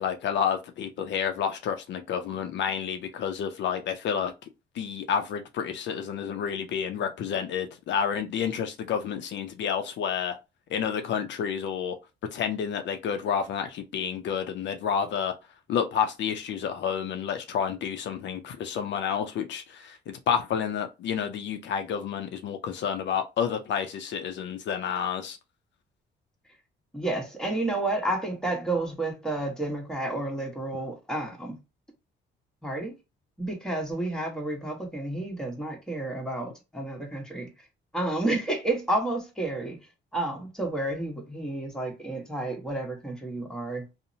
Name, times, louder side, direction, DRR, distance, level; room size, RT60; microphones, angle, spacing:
voice 1, 0.0-4.3 4.8-10.4 10.7-12.0 12.3-15.3 15.7-25.4, left 7 dB, 65° left, 0.4 m, -30 dB
voice 2, 26.9-31.6 32.6-33.0 33.4-37.5 37.9-39.8 40.1-43.9, right 2 dB, 5° left, 1.0 m, -30 dB
2.7 x 2.0 x 2.6 m
cardioid pair, 90°, 20 cm